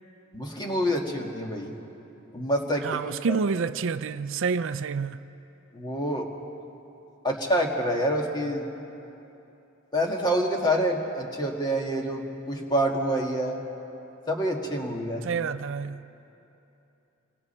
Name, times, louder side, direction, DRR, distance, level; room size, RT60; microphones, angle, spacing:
voice 1, 0.3-1.7 2.3-3.4 5.7-6.3 7.2-8.7 9.9-13.6 14.3-15.2, equal, 20° left, 1.9 m, -27 dB
voice 2, 2.8-5.2 15.2-16.0, right 5 dB, 65° right, 0.5 m, -28 dB
27.5 x 23.0 x 4.4 m
head